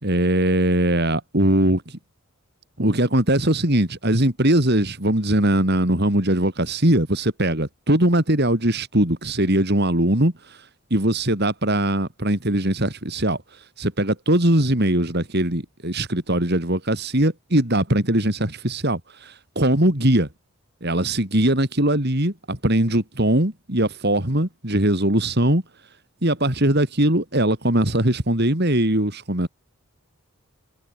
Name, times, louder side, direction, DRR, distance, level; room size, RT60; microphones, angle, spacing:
voice 1, 0.0-2.0 2.8-10.6 10.9-13.4 13.8-20.3 20.8-25.6 26.2-29.5, right 1 dB, 45° right, 3.7 m, -21 dB
head